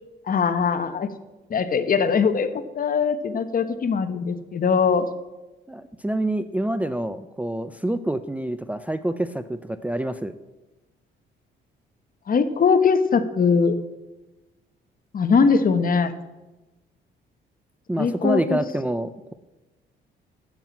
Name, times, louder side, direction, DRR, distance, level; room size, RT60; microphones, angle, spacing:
voice 1, 0.3-1.1 1.5-2.5 2.7-5.1 12.3-13.7 15.1-16.1 18.0-18.6, left 5 dB, 45° left, 11 dB, 1.1 m, -21 dB
voice 2, 5.7-10.4 17.9-19.3, right 1 dB, 5° right, 10 dB, 0.5 m, -27 dB
9.1 x 7.6 x 8.3 m, 1.1 s
cardioid pair, 90°, 20 cm